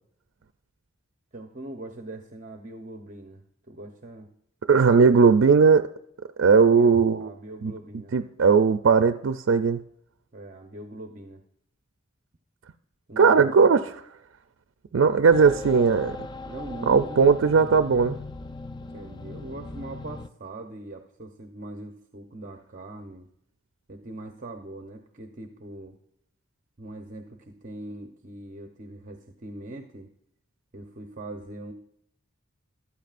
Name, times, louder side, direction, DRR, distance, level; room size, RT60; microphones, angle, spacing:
voice 1, 1.3-4.3 6.7-8.2 10.3-11.4 13.1-13.5 16.4-17.2 18.9-23.3 23.9-26.0 26.8-30.1 30.7-31.7, right 1 dB, 40° right, 0.8 m, -41 dB
voice 2, 4.7-5.9 6.4-7.3 7.6-7.7 8.1-9.8 13.2-13.8 14.9-16.3 16.9-18.2, right 5 dB, 75° right, 0.4 m, -18 dB
sound 1, 15.3-20.3, left 2 dB, 20° left, 0.4 m, -39 dB
14.5 x 13.0 x 2.5 m
head